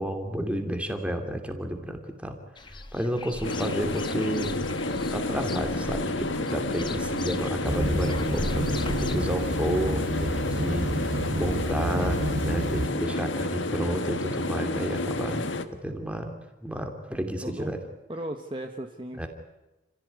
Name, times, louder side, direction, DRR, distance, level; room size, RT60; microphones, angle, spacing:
voice 1, 0.0-2.4 2.7-4.6 5.1-15.4 15.8-16.3 16.6-17.8 19.2-19.3, equal, 5° right, 5 dB, 2.8 m, -31 dB
sound 1, 2.6-9.2, left 2 dB, 25° left, 1.2 m, -39 dB
sound 2, 3.4-15.7, left 2 dB, 70° left, 1.7 m, -30 dB
sound 3, 7.6-12.9, right 1 dB, 70° right, 2.6 m, -30 dB
voice 2, 17.1-17.7 18.1-19.3, right 1 dB, 25° right, 4 dB, 1.4 m, -36 dB
29.5 x 16.0 x 9.5 m, 1.0 s
head